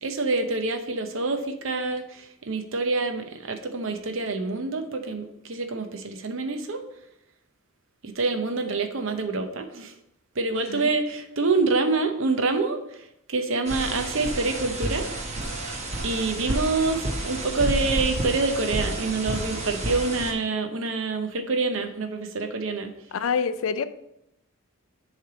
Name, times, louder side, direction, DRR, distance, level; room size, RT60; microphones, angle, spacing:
voice 1, 0.0-6.8 8.0-9.9 10.4-15.1 16.0-22.9, right 3 dB, 60° right, 6 dB, 0.7 m, -26 dB
sound 1, 13.7-20.3, right 1 dB, 30° right, 0.8 m, -30 dB
voice 2, 23.1-23.8, left 6 dB, 65° left, 12 dB, 0.4 m, -26 dB
7.4 x 3.3 x 4.9 m, 0.82 s
head